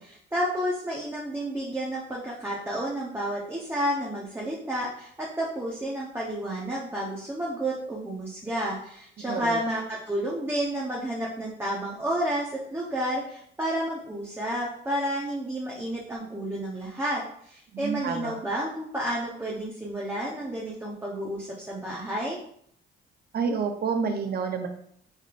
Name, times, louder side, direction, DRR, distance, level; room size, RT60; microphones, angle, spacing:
voice 1, 0.0-22.4, right 1 dB, 10° right, -5 dB, 1.0 m, -31 dB
voice 2, 9.2-9.6 17.7-18.4 23.3-24.7, right 5 dB, 55° right, 5 dB, 0.8 m, -29 dB
5.6 x 3.1 x 2.5 m, 0.65 s
cardioid pair, 90°, 20 cm